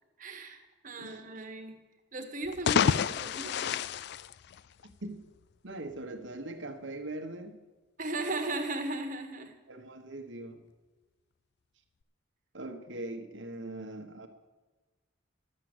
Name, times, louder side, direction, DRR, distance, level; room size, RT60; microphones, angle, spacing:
voice 1, 0.2-1.8 2.1-3.8 8.0-9.5 13.5-13.7, right 2 dB, 40° right, 4 dB, 1.6 m, -37 dB
sound 1, 2.4-5.0, left 7 dB, 55° left, 0.3 m, -29 dB
voice 2, 5.6-7.6 9.7-10.6 12.5-14.3, right 2 dB, 65° right, 5 dB, 1.4 m, -41 dB
12.5 x 7.7 x 8.0 m, 1.3 s
head